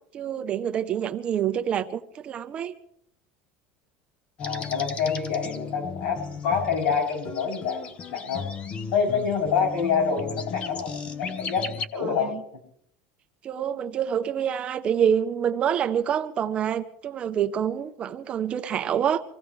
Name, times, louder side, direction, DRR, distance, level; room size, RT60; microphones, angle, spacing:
voice 1, 0.1-2.7 12.0-12.4 13.4-19.2, right 8 dB, 25° right, 0.7 m, -27 dB
voice 2, 4.4-8.4 8.9-12.3, left 6 dB, 65° left, 7.8 m, -27 dB
sound 1, 4.4-11.9, left 5 dB, 25° left, 0.8 m, -35 dB
25.5 x 16.5 x 3.2 m
cardioid pair, 170°, 4 cm